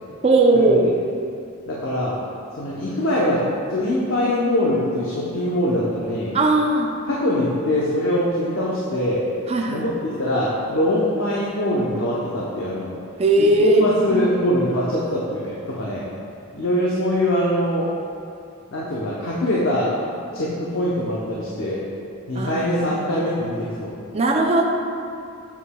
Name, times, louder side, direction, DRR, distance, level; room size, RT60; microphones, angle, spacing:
voice 1, 0.2-0.9 6.3-6.9 9.5-9.8 13.2-14.3 22.3-22.9 24.1-24.6, right 2 dB, 30° right, 1 dB, 0.4 m, -18 dB
voice 2, 1.7-2.2 2.6-3.4 3.7-6.3 7.1-9.2 9.7-9.9 10.2-12.9 13.4-16.0 16.5-17.9 18.7-19.9 20.3-21.8 22.3-23.9, left 1 dB, 65° left, -6 dB, 0.8 m, -23 dB
7.1 x 7.0 x 2.3 m, 2.5 s
head